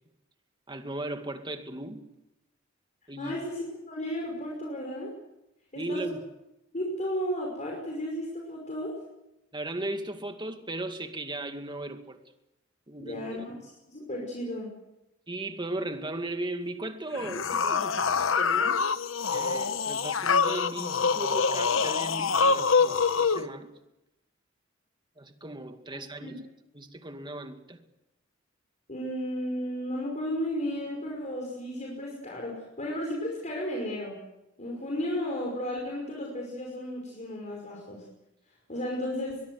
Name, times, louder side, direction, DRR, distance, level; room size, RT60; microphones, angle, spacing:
voice 1, 0.7-2.1 3.1-3.3 5.8-6.2 9.5-12.2 12.9-13.5 15.3-18.8 19.3-23.7 25.2-26.4 26.7-27.8, right 1 dB, 25° right, 2.2 m, -37 dB
voice 2, 3.2-5.1 5.7-6.0 6.7-8.9 13.0-13.5 13.9-14.7 26.2-26.4 28.9-34.2 34.6-38.0 38.7-39.4, equal, 40° left, 5.6 m, -34 dB
sound 1, 17.1-23.4, left 5 dB, 90° left, 1.0 m, -25 dB
23.0 x 22.0 x 7.9 m
head